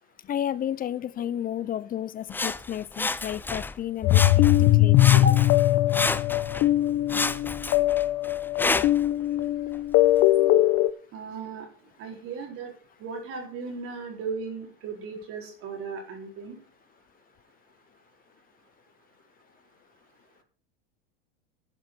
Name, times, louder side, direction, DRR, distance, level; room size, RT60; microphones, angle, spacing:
voice 1, 0.3-5.2, left 10 dB, 30° left, 0.8 m, -32 dB
Sawing, 2.3-3.8 4.1-4.7 5.0-6.7 7.1-9.1 9.7-9.8, left 3 dB, 5° left, 0.5 m, -30 dB
sound 1, 4.0-10.9, left 15 dB, 45° left, 1.0 m, -21 dB
voice 2, 11.1-11.7 12.0-12.7 13.0-16.6, right 3 dB, 50° right, 4.4 m, -35 dB
11.5 x 7.7 x 5.5 m
hypercardioid pair, 100°, 29 cm